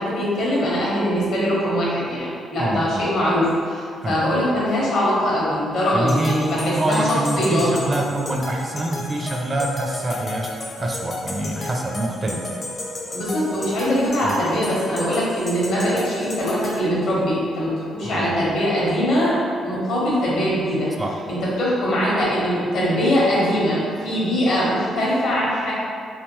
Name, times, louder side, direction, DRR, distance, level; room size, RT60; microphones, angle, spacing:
voice 1, 0.0-7.7 13.1-19.4 19.6-20.9 21.3-25.7, equal, 80° left, -6 dB, 1.2 m, -22 dB
voice 2, 2.6-3.1 4.0-4.4 5.9-10.5 10.8-12.4 14.2-14.4 18.0-18.4 21.0-21.1, right 1 dB, 30° right, 1 dB, 0.4 m, -25 dB
sound 1, 6.1-16.8, left 2 dB, 40° left, 0.5 m, -33 dB
3.5 x 2.7 x 3.1 m, 2.3 s
cardioid pair, 90°, 0 cm